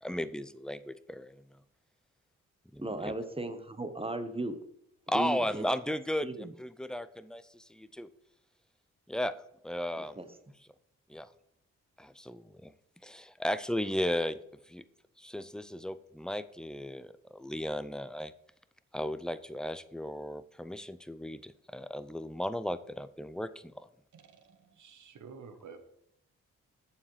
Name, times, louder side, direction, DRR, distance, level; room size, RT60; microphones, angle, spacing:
voice 1, 0.0-1.4 2.7-3.1 5.1-8.1 9.1-9.3 9.6-10.2 11.1-11.3 12.0-12.7 13.0-14.3 14.7-14.8 15.2-18.3 18.9-23.5 23.8-23.9, left 1 dB, ahead, 12 dB, 0.5 m, -35 dB
voice 2, 2.8-4.6 5.1-5.6 6.2-6.5 10.0-10.3, right 2 dB, 15° right, 9 dB, 1.1 m, -36 dB
voice 3, 24.1-25.8, right 5 dB, 60° right, 8 dB, 1.1 m, -51 dB
8.7 x 7.1 x 3.2 m, 0.74 s
supercardioid pair, 40°, 34 cm